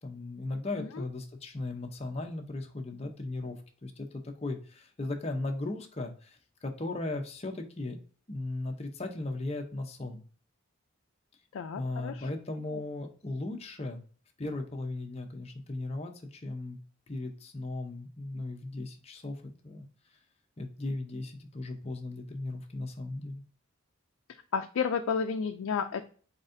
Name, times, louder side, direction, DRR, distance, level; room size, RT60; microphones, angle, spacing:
voice 1, 0.0-8.0 8.3-10.2 11.7-14.0 14.4-16.8 17.1-19.9 20.6-23.4, left 2 dB, 30° left, 4 dB, 0.6 m, -37 dB
voice 2, 11.5-12.3 12.7-12.8 24.5-26.1, left 6 dB, 85° left, 5 dB, 0.4 m, -32 dB
4.3 x 4.0 x 2.6 m, 0.41 s
head